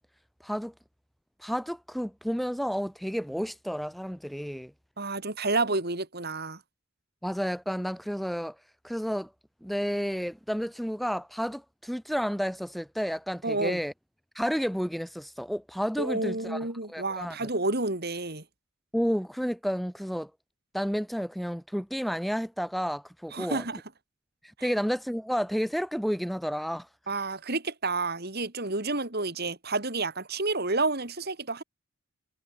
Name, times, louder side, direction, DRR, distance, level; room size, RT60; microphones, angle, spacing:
voice 1, 0.4-0.7 1.4-4.7 7.2-8.5 8.8-9.3 9.6-13.9 14.3-17.5 18.9-20.3 20.7-23.6 24.6-26.9, equal, ahead, 1.4 m, -31 dB
voice 2, 5.0-6.6 13.4-13.8 16.0-18.4 23.3-23.8 24.6-24.7 27.1-31.6, right 3 dB, 45° right, 2.9 m, -30 dB
head